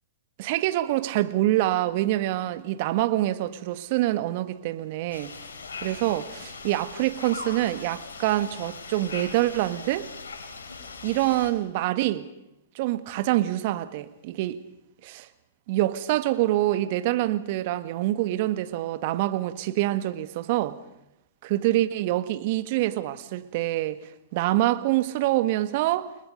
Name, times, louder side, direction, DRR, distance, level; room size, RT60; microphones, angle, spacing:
voice 1, 0.4-5.3 5.8-10.1 11.0-12.3 12.7-14.6 15.0-15.3 15.7-20.8 21.4-24.0 24.3-26.1, right 15 dB, 50° right, 1.6 m, -25 dB
sound 1, 5.1-11.5, left 4 dB, 75° left, 4.4 m, -40 dB
30.0 x 20.5 x 5.3 m
hypercardioid pair, 110°, 0 cm